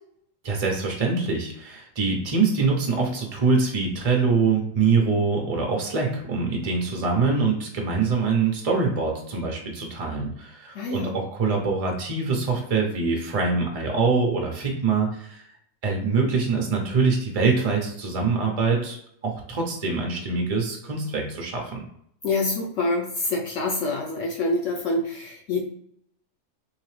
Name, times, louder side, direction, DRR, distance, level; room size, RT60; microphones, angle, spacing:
voice 1, 0.4-15.4 15.8-19.0 19.2-21.9, right 4 dB, 70° right, 1 dB, 0.3 m, -24 dB
voice 2, 10.7-11.1 22.2-25.6, left 2 dB, 65° left, -1 dB, 0.8 m, -26 dB
3.8 x 3.2 x 3.2 m, 0.69 s
omnidirectional pair, 1.7 m